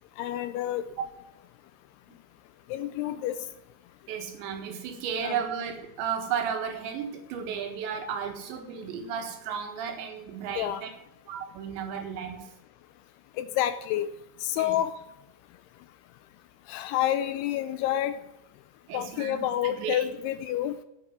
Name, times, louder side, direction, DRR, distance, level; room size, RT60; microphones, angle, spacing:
voice 1, 0.2-0.9 2.7-3.4 5.2-5.4 10.6-10.8 13.4-14.1 14.4-15.0 16.7-18.2 18.9-20.8, left 12 dB, 80° left, 13 dB, 2.4 m, -28 dB
voice 2, 4.1-10.9 11.3-12.5 14.6-14.8 18.9-20.1, right 7 dB, 85° right, 5 dB, 3.9 m, -34 dB
8.8 x 8.5 x 9.3 m, 0.84 s
omnidirectional pair, 5.0 m